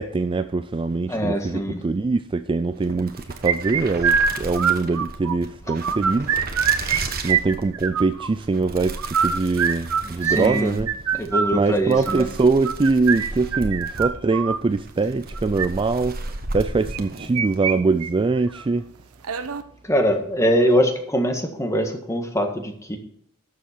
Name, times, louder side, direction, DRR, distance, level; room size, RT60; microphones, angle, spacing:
voice 1, 0.0-6.4 7.2-10.9 11.5-18.8, right 3 dB, 25° right, 0.3 m, -23 dB
voice 2, 1.1-1.8 10.0-10.8 11.1-12.3 19.8-23.0, equal, 15° left, 1.6 m, -23 dB
sound 1, 2.7-17.6, right 2 dB, 45° right, 1.3 m, -35 dB
sound 2, 3.5-5.4 5.7-7.0 7.2-8.3 9.0-14.6 15.4-15.7 16.9-17.7 18.0-18.1 18.5-18.6 19.2-19.6, right 7 dB, 85° right, 0.9 m, -23 dB
12.5 x 7.2 x 4.5 m
head